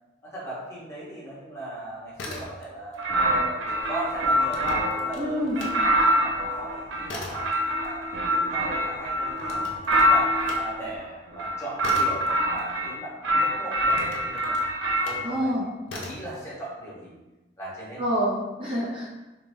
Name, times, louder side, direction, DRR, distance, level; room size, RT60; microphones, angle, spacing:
voice 1, 0.2-9.6 9.9-14.6 15.0-15.5 15.9-17.2 17.6-18.0, right 1 dB, 15° left, -8 dB, 1.0 m, -38 dB
sound 1, 2.0-3.0 3.3-5.8 6.2-13.2 13.8-15.3 15.8-16.3, left 2 dB, 80° left, 0.6 m, -41 dB
sound 2, 3.0-5.1 5.6-10.7 11.3-12.9 13.2-15.2, equal, 75° right, 0.5 m, -25 dB
sound 3, 3.8-11.0, equal, 45° right, 1.4 m, -41 dB
voice 2, 5.2-5.6 15.2-15.7 18.0-19.1, equal, 25° right, -6 dB, 0.6 m, -27 dB
3.4 x 3.2 x 2.6 m, 1.1 s
head